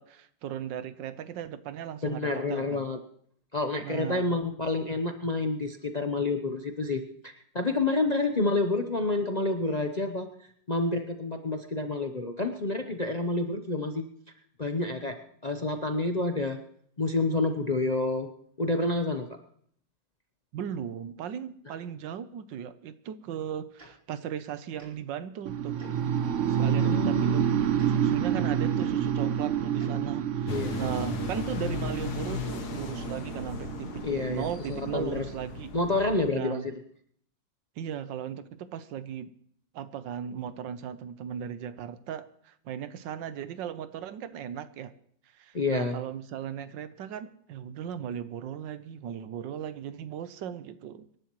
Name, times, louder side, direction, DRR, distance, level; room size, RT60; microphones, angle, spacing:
voice 1, 0.0-2.9 3.8-4.4 20.5-25.8 26.5-27.5 27.9-35.7 36.3-36.7 37.8-39.3 39.7-44.9 45.3-51.1, right 9 dB, 90° right, 13 dB, 1.5 m, -37 dB
voice 2, 2.0-3.0 3.5-10.3 10.7-14.1 14.6-16.6 17.0-18.3 18.6-19.4 21.7-21.8 26.8-27.4 30.5-30.8 34.0-35.3 35.7-36.7 45.5-46.0, left 2 dB, 40° left, 5 dB, 0.6 m, -29 dB
Tick-tock, 23.8-23.9 24.8-24.9 25.8-25.9 26.8-26.9 27.7-27.9 28.8-28.9 29.8-29.9 30.8-31.0, right 1 dB, 30° right, 4.0 m, -50 dB
sound 1, 25.5-35.4, right 8 dB, 60° right, 0.8 m, -29 dB
sound 2, 30.5-36.3, left 6 dB, 60° left, 1.6 m, -37 dB
26.0 x 11.0 x 3.1 m, 0.62 s
omnidirectional pair, 1.9 m